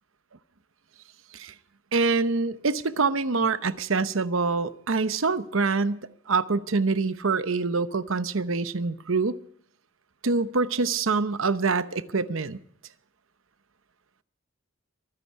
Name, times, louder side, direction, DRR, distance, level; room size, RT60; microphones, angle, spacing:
voice 1, 1.9-9.3 10.2-12.6, right 4 dB, 70° right, 0.9 m, -25 dB
23.5 x 9.8 x 4.7 m
head